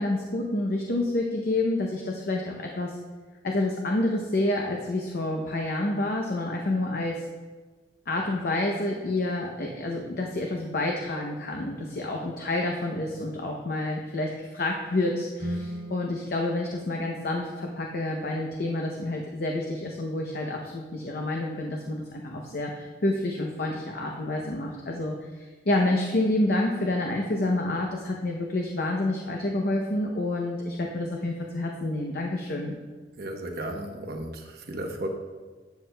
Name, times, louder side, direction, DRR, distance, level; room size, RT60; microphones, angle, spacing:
voice 1, 0.0-3.0 3.4-7.2 8.1-32.7, left 2 dB, 55° left, 1 dB, 0.7 m, -28 dB
Guitar, 15.4-17.9, equal, 90° right, 1.8 m, -39 dB
voice 2, 33.2-35.1, right 1 dB, 60° right, 3 dB, 1.0 m, -34 dB
11.5 x 7.6 x 2.3 m, 1.4 s
head